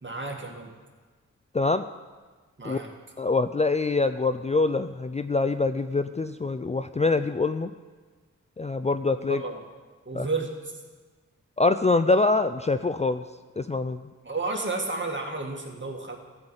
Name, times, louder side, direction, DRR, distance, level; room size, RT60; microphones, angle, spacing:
voice 1, 0.0-0.7 2.6-2.9 9.3-9.6 10.1-10.8 14.2-16.2, right 3 dB, 40° right, 1 dB, 2.1 m, -32 dB
voice 2, 3.2-7.7 8.6-9.4 10.1-10.3 11.6-13.2 13.6-14.0, left 3 dB, 25° left, 10 dB, 0.4 m, -24 dB
13.0 x 5.7 x 8.0 m, 1.4 s
cardioid pair, 45°, 30 cm